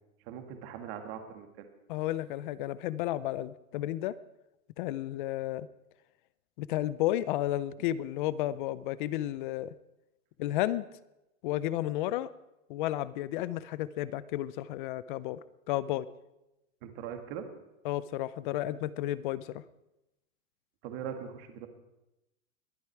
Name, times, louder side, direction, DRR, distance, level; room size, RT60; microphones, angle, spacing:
voice 1, 0.3-1.7 16.8-17.5 20.8-21.7, right 8 dB, 45° right, 6 dB, 2.0 m, -41 dB
voice 2, 1.9-4.1 4.8-5.7 6.6-9.7 10.4-10.9 11.4-12.3 12.7-15.4 15.7-16.1 17.8-19.6, left 14 dB, 40° left, 18 dB, 0.6 m, -32 dB
21.5 x 9.5 x 4.6 m, 0.93 s
hypercardioid pair, 145°, 41 cm